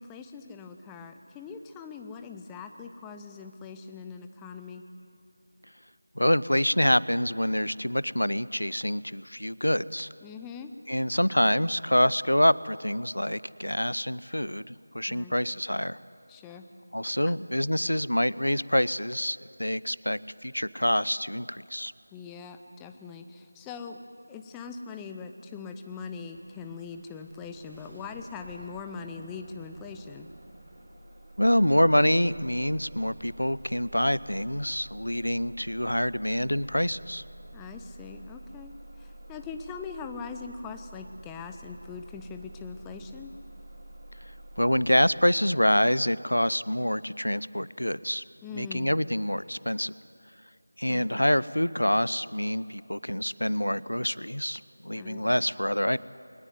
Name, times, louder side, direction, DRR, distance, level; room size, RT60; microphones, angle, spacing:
voice 1, 0.0-4.8 10.2-10.7 15.1-15.3 16.3-16.6 17.2-17.3 22.1-30.3 37.5-38.7 39.0-43.3 48.4-48.9 50.9-51.1 54.9-55.2, left 5 dB, 5° left, 6 dB, 0.5 m, -41 dB
voice 2, 6.2-10.1 10.9-16.0 16.9-21.9 31.4-37.2 44.6-48.2 48.5-49.9 50.8-56.0, equal, 75° left, 19 dB, 0.6 m, -26 dB
Bus / Engine starting, 26.3-45.0, right 1 dB, 40° right, 4.5 m, -48 dB
22.5 x 19.0 x 9.3 m, 2.5 s
figure-of-eight pair, 170°, 0 cm